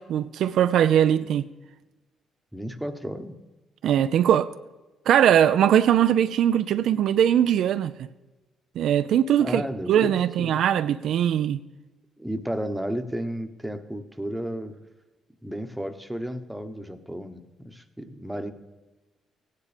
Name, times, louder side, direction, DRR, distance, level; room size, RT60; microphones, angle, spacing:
voice 1, 0.0-1.4 3.8-4.5 5.1-7.9 8.8-9.6 9.9-11.6, right 10 dB, 75° right, 0.4 m, -20 dB
voice 2, 2.5-3.4 9.4-10.5 12.2-14.8 15.4-18.5, equal, 5° right, 1.0 m, -33 dB
16.0 x 9.6 x 5.1 m
cardioid pair, 90°, 0 cm